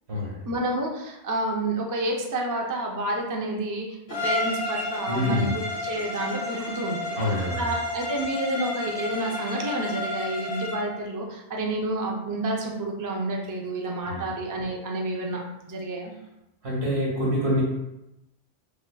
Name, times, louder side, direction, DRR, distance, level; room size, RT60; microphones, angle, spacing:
voice 1, 0.4-4.0 4.2-7.2 7.6-15.4 15.7-16.1, right 1 dB, 30° right, 0 dB, 0.3 m, -29 dB
Bowed string instrument, 4.1-10.9, left 2 dB, 65° left, 1.0 m, -31 dB
voice 2, 5.1-5.5 7.2-7.7 14.1-14.2 16.6-17.6, left 1 dB, 85° right, -6 dB, 1.8 m, -26 dB
3.9 x 3.3 x 2.2 m, 0.90 s
omnidirectional pair, 1.1 m